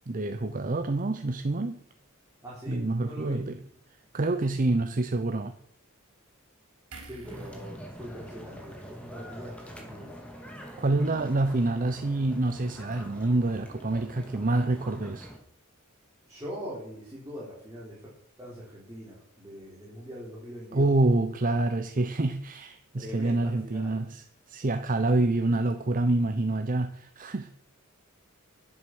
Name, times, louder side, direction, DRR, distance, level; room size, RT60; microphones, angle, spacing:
voice 1, 0.1-1.8 2.7-3.6 4.1-5.5 10.8-15.3 20.7-27.5, right 2 dB, 40° right, 8 dB, 0.8 m, -27 dB
voice 2, 2.4-3.4 7.0-10.1 16.3-18.1 18.4-20.9 22.9-24.0, equal, 15° right, -7 dB, 4.4 m, -42 dB
sound 1, 6.9-10.3 10.6-10.8, right 3 dB, 80° right, 4.5 m, -53 dB
sound 2, 7.2-15.4, equal, 5° left, 2.4 m, -45 dB
11.0 x 10.5 x 6.2 m, 0.68 s
head